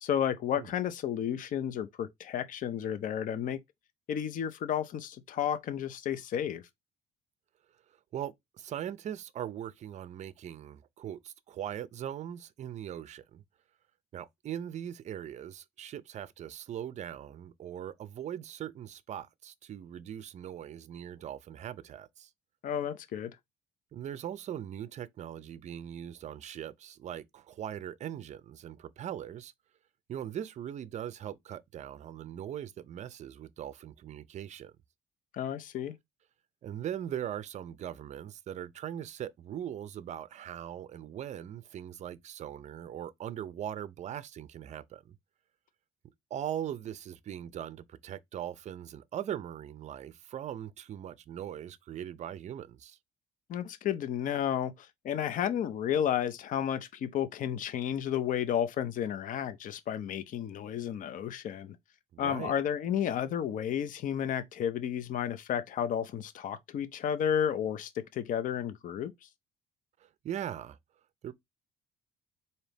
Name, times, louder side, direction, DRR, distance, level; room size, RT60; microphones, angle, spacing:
voice 1, 0.0-3.6 4.1-6.6 22.6-23.4 35.3-36.0 53.5-61.8 62.2-69.1, left 9 dB, 50° left, 0.6 m, -32 dB
voice 2, 8.1-13.4 14.1-22.3 23.9-29.5 30.1-34.7 36.6-45.1 46.3-53.0 62.1-62.5 70.0-70.8 71.2-71.3, right 10 dB, 45° right, 0.5 m, -40 dB
3.9 x 2.8 x 3.4 m
cardioid pair, 110°, 17 cm